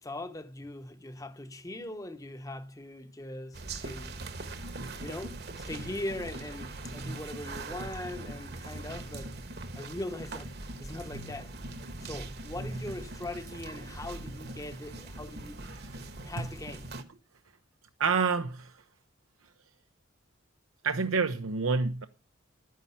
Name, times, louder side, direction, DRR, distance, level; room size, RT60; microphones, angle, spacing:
voice 1, 0.0-4.3 5.0-9.4 9.7-11.5 12.0-15.6 16.2-16.9, left 1 dB, 15° left, 0.9 m, -41 dB
sound 1, 3.5-17.0, right 2 dB, 50° right, 1.4 m, -41 dB
voice 2, 18.0-18.8 20.8-22.1, right 5 dB, 85° right, 0.8 m, -28 dB
12.0 x 9.6 x 5.6 m
head